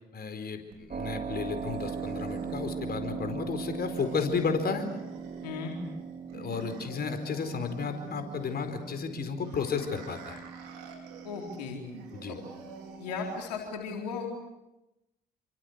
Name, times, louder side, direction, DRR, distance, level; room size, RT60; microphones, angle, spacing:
voice 1, 0.1-4.8 6.3-10.4 12.1-12.4, left 5 dB, 50° left, 7 dB, 4.7 m, -33 dB
sound 1, 0.7-13.7, right 4 dB, 85° right, 4.2 m, -49 dB
Keyboard (musical), 0.9-13.4, right 6 dB, 40° right, 2.2 m, -40 dB
voice 2, 5.4-5.7 11.2-11.8 12.3-12.4 13.0-14.3, left 5 dB, 85° left, 1 dB, 4.1 m, -36 dB
28.0 x 24.0 x 8.2 m, 0.95 s
hypercardioid pair, 50°, 20 cm